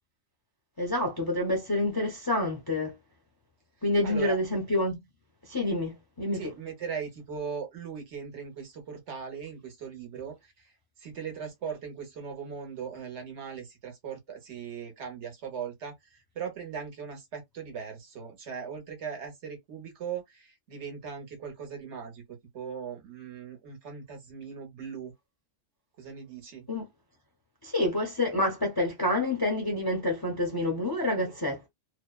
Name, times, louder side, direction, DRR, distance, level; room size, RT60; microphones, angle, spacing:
voice 1, 0.8-3.0 3.8-5.0 5.5-6.4 26.7-26.9 27.6-31.7, left 1 dB, 30° left, 0.5 m, -28 dB
voice 2, 4.0-4.4 6.3-10.7 11.0-25.1 26.0-26.7 31.2-31.3, right 6 dB, 65° right, 1.1 m, -39 dB
2.7 x 2.0 x 2.3 m
omnidirectional pair, 1.3 m